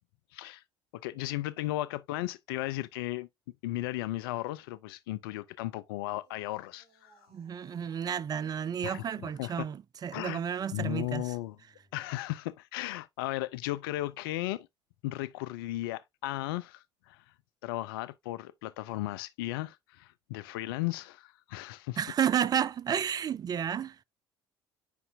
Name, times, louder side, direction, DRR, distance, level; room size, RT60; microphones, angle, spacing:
voice 1, 0.3-0.6 0.9-3.3 3.6-7.1 8.8-9.5 10.1-10.4 10.7-11.6 11.9-14.7 15.0-17.2 17.6-22.0, left 17 dB, 70° left, 0.4 m, -35 dB
sound 1, 6.1-8.4 10.3-12.1 13.7-14.2, right 3 dB, 50° right, 5.0 m, -65 dB
voice 2, 7.3-11.4 22.0-24.0, right 8 dB, 30° right, 0.4 m, -31 dB
8.1 x 5.4 x 2.6 m
figure-of-eight pair, 55°, 13 cm